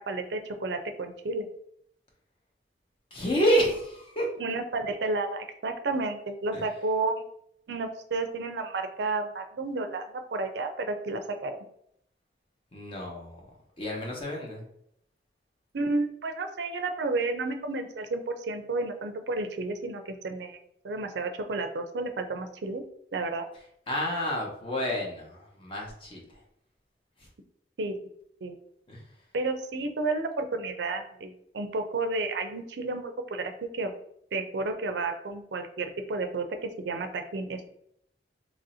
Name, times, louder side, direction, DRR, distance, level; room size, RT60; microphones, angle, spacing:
voice 1, 0.1-1.5 4.4-7.2 7.7-11.6 15.7-20.6 20.8-22.8 23.1-23.5 27.8-27.9 28.4-28.5 29.3-33.9 34.3-37.7, right 3 dB, 70° right, 6 dB, 0.5 m, -31 dB
voice 2, 3.1-4.3 6.5-6.7 12.7-13.4 13.8-14.7 23.9-26.4 28.9-29.0, equal, 30° left, -1 dB, 0.8 m, -29 dB
3.0 x 2.7 x 4.1 m, 0.71 s
head